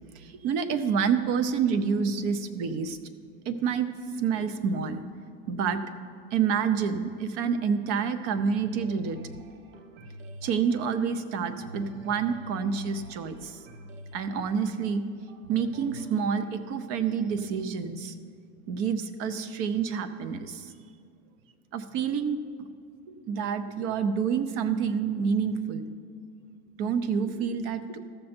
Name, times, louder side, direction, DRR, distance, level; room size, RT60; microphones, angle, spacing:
voice 1, 0.1-3.0 3.5-5.0 5.5-5.8 6.3-9.2 10.4-13.6 14.1-15.1 15.5-18.2 18.7-20.7 21.7-22.7 23.1-25.8 26.8-28.0, right 6 dB, 50° right, 11 dB, 0.8 m, -28 dB
sound 1, 8.6-16.5, equal, 75° right, 1.0 m, -47 dB
14.0 x 6.6 x 4.4 m, 2.3 s
supercardioid pair, 120°, 30 cm